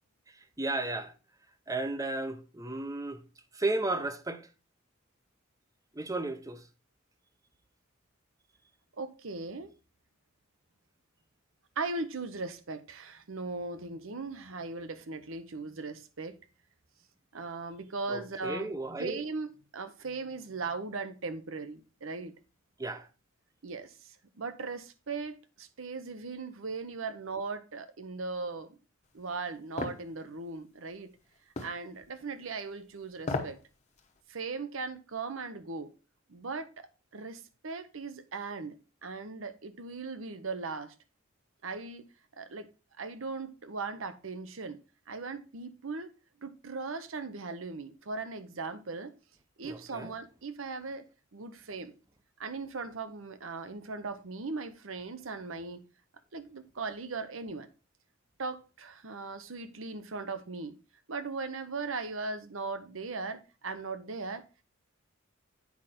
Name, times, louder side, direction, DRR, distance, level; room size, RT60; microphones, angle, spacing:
voice 1, 0.3-1.1 1.7-3.2 3.5-4.5 5.9-6.7 18.1-19.3 22.8-23.1 49.6-50.2, right 2 dB, 15° right, 0.7 m, -34 dB
voice 2, 9.0-9.7 11.8-16.4 17.3-18.7 19.0-22.4 23.6-28.7 29.1-31.1 31.6-33.6 34.3-35.9 36.3-36.9 37.1-40.9 41.6-42.1 42.4-42.7 43.0-46.1 46.4-49.2 49.6-51.1 51.3-51.9 52.4-55.8 56.3-57.7 58.4-60.8 61.1-64.5, right 4 dB, 70° right, 0.8 m, -38 dB
sound 1, 29.8-30.0 31.6-31.8 33.2-33.6 34.0-34.1, left 3 dB, 35° left, 1.0 m, -33 dB
8.2 x 5.0 x 4.2 m
head